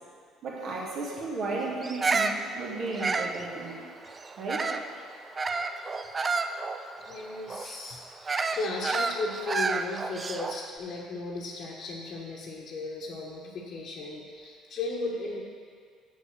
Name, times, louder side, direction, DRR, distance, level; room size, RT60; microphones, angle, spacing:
voice 1, 0.4-3.7 4.4-4.7, right 3 dB, 55° right, -4 dB, 2.0 m, -34 dB
Bird vocalization bird call bird song, 1.8-4.9 5.4-10.7, right 4 dB, 30° right, 0.5 m, -30 dB
voice 2, 7.0-8.0 8.5-15.4, left 2 dB, 60° left, -3 dB, 1.2 m, -35 dB
7.1 x 6.2 x 6.5 m, 2.1 s
hypercardioid pair, 65°, 0 cm